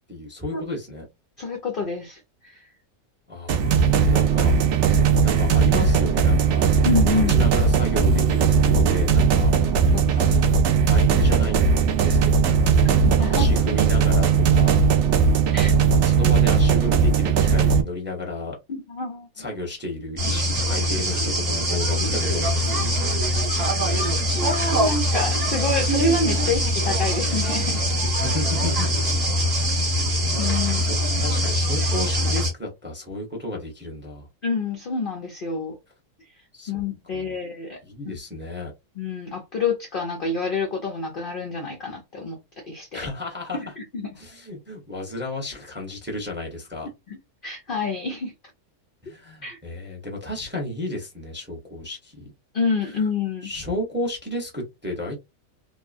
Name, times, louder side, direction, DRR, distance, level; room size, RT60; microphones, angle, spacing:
voice 1, 0.1-1.0 3.3-4.5 5.2-6.7 7.1-9.5 10.1-10.6 10.9-11.6 12.0-12.9 13.3-14.8 15.9-18.6 19.4-22.9 28.2-28.9 29.5-29.8 30.6-34.3 36.5-36.7 37.1-37.3 37.8-38.7 42.9-43.7 44.1-46.9 49.0-52.3 52.8-53.1 53.4-55.2, left 1 dB, 10° right, 0.5 m, -33 dB
voice 2, 1.4-2.7 6.8-7.3 9.9-10.2 12.8-13.5 15.5-15.7 18.7-19.3 24.3-27.9 30.4-30.8 34.4-35.8 36.7-37.8 38.0-38.2 39.0-42.4 42.7-43.1 43.5-44.1 47.1-48.3 49.4-49.6 52.5-53.5, left 3 dB, 80° left, 0.4 m, -27 dB
sound 1, 3.5-17.8, right 6 dB, 70° right, 0.7 m, -18 dB
sound 2, 20.2-32.5, equal, 30° right, 1.1 m, -23 dB
2.8 x 2.2 x 2.4 m
omnidirectional pair, 1.6 m